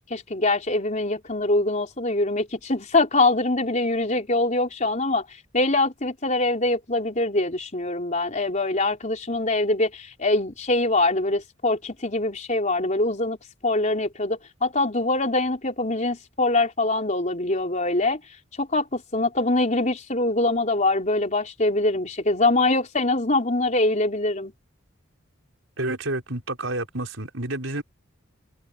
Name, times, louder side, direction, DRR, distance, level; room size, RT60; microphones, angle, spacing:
voice 1, 0.1-5.2 5.5-13.4 13.6-18.2 18.6-24.5, left 2 dB, 35° left, 4.3 m, -23 dB
voice 2, 25.8-27.8, right 2 dB, 70° right, 5.8 m, -29 dB
head